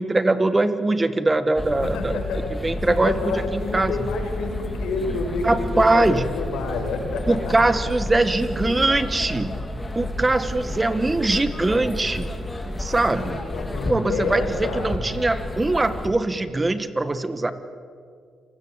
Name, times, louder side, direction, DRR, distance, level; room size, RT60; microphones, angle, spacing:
voice 1, 0.0-2.1 2.6-4.1 5.4-6.2 7.3-9.6 9.9-12.3 12.8-13.3 13.9-17.5, right 2 dB, 20° right, 11 dB, 1.6 m, -22 dB
sound 1, 1.6-16.1, left 1 dB, 15° left, 3.0 m, -31 dB
voice 2, 1.7-2.5 2.9-7.7 12.9-14.9, left 4 dB, 80° left, 3 dB, 5.7 m, -29 dB
27.5 x 20.5 x 8.2 m, 2.2 s
cardioid pair, 90°, 0 cm